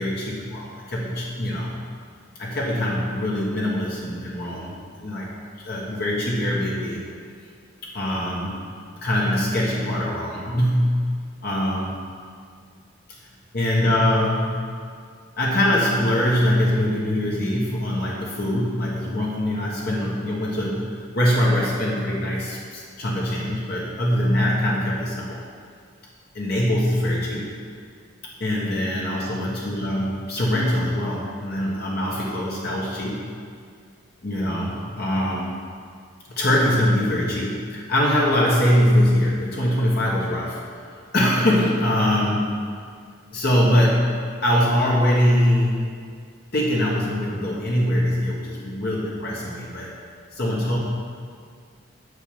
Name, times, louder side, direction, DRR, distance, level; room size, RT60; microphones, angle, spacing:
voice 1, 0.0-1.7 2.3-5.3 5.6-7.0 7.9-8.6 9.0-11.0 11.4-12.0 13.5-14.7 15.4-20.9 21.1-25.4 26.3-27.5 28.4-33.2 34.2-35.6 36.3-40.6 41.1-42.4 43.3-44.1 44.4-45.9 46.5-49.9 50.3-50.8, left 1 dB, 50° left, -4 dB, 1.3 m, -22 dB
8.2 x 5.5 x 7.2 m, 2.1 s
head